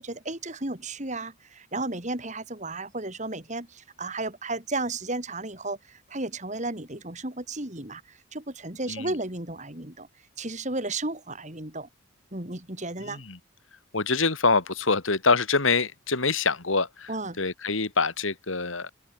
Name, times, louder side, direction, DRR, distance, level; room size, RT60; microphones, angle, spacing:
voice 1, 0.0-5.8 6.1-8.0 8.3-10.1 10.4-11.9 12.3-13.2 17.1-17.4, right 2 dB, 35° right, 3.5 m, -33 dB
voice 2, 13.0-13.4 13.9-18.9, left 4 dB, 75° left, 2.7 m, -25 dB
head